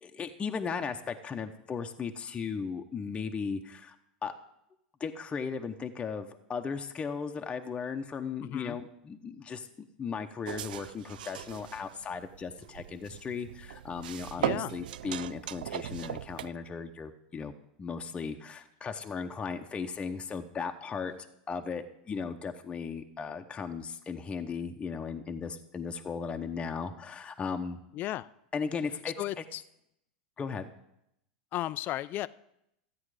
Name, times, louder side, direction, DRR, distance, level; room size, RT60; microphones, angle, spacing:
voice 1, 0.0-4.0 4.2-4.3 5.0-17.5 17.8-21.1 21.5-27.8 28.5-29.4 30.4-30.7, left 5 dB, 20° left, 5 dB, 0.9 m, -36 dB
voice 2, 8.4-8.8 14.4-14.7 27.9-28.3 29.2-29.6 31.5-32.3, left 14 dB, 40° left, 17 dB, 0.5 m, -34 dB
sound 1, 10.4-16.5, right 11 dB, 80° right, 0.3 m, -38 dB
13.5 x 8.6 x 4.9 m, 0.79 s
hypercardioid pair, 105°, 5 cm